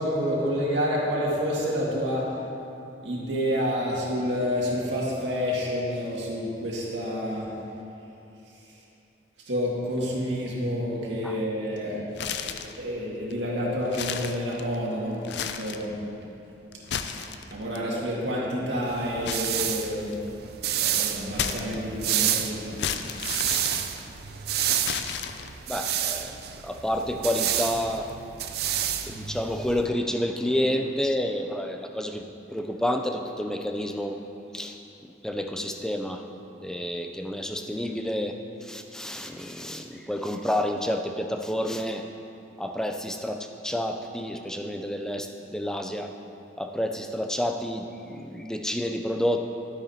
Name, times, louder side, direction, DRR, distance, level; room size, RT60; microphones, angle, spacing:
voice 1, 0.0-2.3 3.0-7.5 9.5-12.0 12.4-15.9 17.5-20.2 20.7-22.8, equal, 80° right, -5 dB, 2.0 m, -29 dB
sound 1, 12.1-12.8 13.3-13.4 13.8-14.9 15.2-15.9 16.7-17.8 19.2-20.3 21.3-22.1 22.8-24.3 24.8-25.7, left 7 dB, 65° left, 0.4 m, -33 dB
sound 2, 18.9-29.9, right 10 dB, 55° right, 0.4 m, -30 dB
voice 2, 25.7-26.3 26.6-28.1 29.1-32.2 32.5-34.2 34.5-34.8 35.2-36.2 36.6-42.0 42.6-46.1 46.6-49.4, left 1 dB, 5° left, 4 dB, 0.4 m, -29 dB
12.0 x 9.1 x 2.8 m, 2.8 s
head